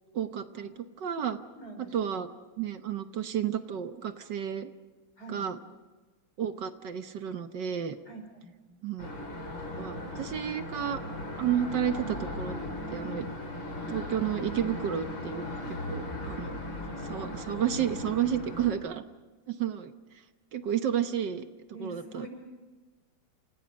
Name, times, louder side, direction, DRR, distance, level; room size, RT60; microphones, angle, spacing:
voice 1, 0.1-1.4 1.9-2.3 2.6-4.7 5.3-5.6 6.4-8.0 8.8-9.1 9.8-11.0 11.4-12.5 12.9-13.3 13.9-15.5 15.9-16.6 17.0-19.0 19.5-19.9 20.5-21.4 21.8-22.3, right 9 dB, 65° right, 9 dB, 1.6 m, -31 dB
voice 2, 1.5-2.0 5.2-5.4 8.1-8.5 15.6-15.8 21.7-22.3, right 2 dB, 55° left, 3 dB, 6.1 m, -44 dB
sound 1, 9.0-18.7, left 1 dB, 70° left, 4.6 m, -37 dB
29.0 x 28.5 x 5.3 m, 1.3 s
omnidirectional pair, 2.1 m